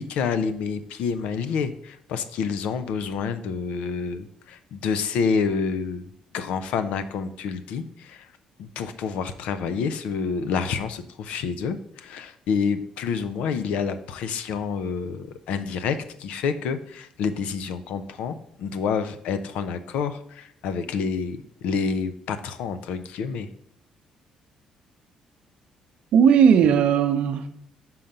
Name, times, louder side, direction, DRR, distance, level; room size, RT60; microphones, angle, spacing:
voice 1, 0.0-8.3 8.6-23.5, left 5 dB, 80° left, 11 dB, 0.5 m, -28 dB
voice 2, 26.1-27.5, right 7 dB, 70° right, 8 dB, 0.6 m, -17 dB
5.7 x 3.8 x 5.3 m, 0.72 s
cardioid pair, 90°, 2 cm